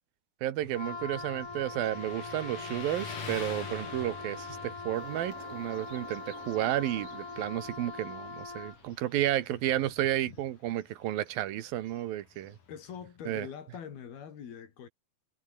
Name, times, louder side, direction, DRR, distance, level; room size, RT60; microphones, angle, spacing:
voice 1, 0.4-12.6 13.3-13.5, right 13 dB, 75° right, 3.0 m, -32 dB
Motorcycle, 0.6-13.2, left 5 dB, 60° left, 5.8 m, -47 dB
Wind instrument woodwind instrument, 0.7-8.9, left 3 dB, 25° left, 3.3 m, -42 dB
sound 1, 4.9-9.3, right 4 dB, 40° right, 5.7 m, -51 dB
voice 2, 12.7-14.9, left 8 dB, 90° left, 5.2 m, -43 dB
omnidirectional pair, 4.2 m